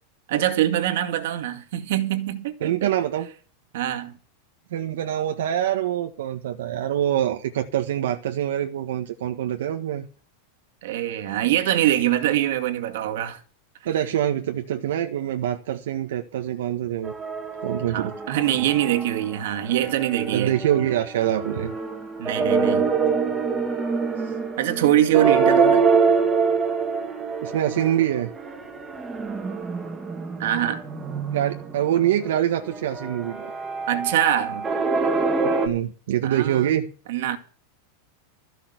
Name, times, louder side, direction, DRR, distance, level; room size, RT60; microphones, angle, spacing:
voice 1, 0.3-2.9 3.7-4.1 10.8-13.4 17.9-20.5 22.2-22.9 24.6-25.8 30.4-30.9 33.9-34.7 36.2-36.7 37.1-37.4, right 12 dB, 60° right, 2.2 m, -23 dB
voice 2, 2.6-3.3 4.7-10.1 13.8-17.1 17.6-18.1 20.3-21.7 24.2-24.3 27.4-28.3 31.3-33.5 35.6-36.9, right 11 dB, 80° right, 1.5 m, -25 dB
sound 1, 17.0-19.3 19.6-35.7, right 5 dB, 10° right, 1.8 m, -25 dB
14.0 x 6.7 x 8.1 m
supercardioid pair, 175°, 0 cm